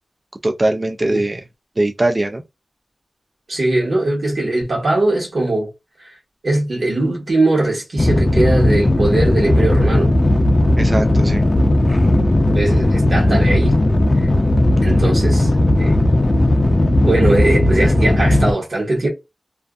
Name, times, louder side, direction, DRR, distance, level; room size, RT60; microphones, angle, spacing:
voice 1, 0.4-1.4 1.8-2.4 10.8-11.4, right 2 dB, 40° right, 0.3 m, -20 dB
voice 2, 3.5-5.7 6.4-10.1 12.5-13.8 14.2-14.3 14.8-15.5 15.8-15.9 17.0-19.1, right 2 dB, 80° right, 1.2 m, -20 dB
sound 1, 8.0-18.5, left 1 dB, 40° left, 0.5 m, -15 dB
2.5 x 2.4 x 2.2 m
wide cardioid pair, 60°, 0 cm